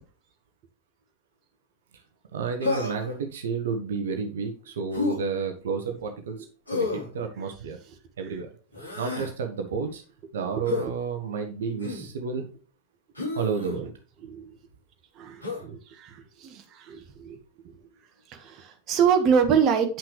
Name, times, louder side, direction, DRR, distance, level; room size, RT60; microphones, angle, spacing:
voice 1, 2.3-6.4 6.7-7.8 8.2-8.5 9.0-10.0 10.3-12.4 13.3-13.9, right 5 dB, 60° right, 5 dB, 1.1 m, -31 dB
Human voice, 2.6-3.2 4.9-5.2 6.7-7.1 8.7-9.3 10.6-10.9 11.8-12.1 13.1-13.8 15.4-15.6, left 4 dB, 80° left, 4.6 m, -30 dB
voice 2, 14.2-14.6 15.1-17.4 18.3-20.0, right 7 dB, 35° right, 6 dB, 1.4 m, -26 dB
8.8 x 5.9 x 3.3 m, 0.38 s
figure-of-eight pair, 90°, 0 cm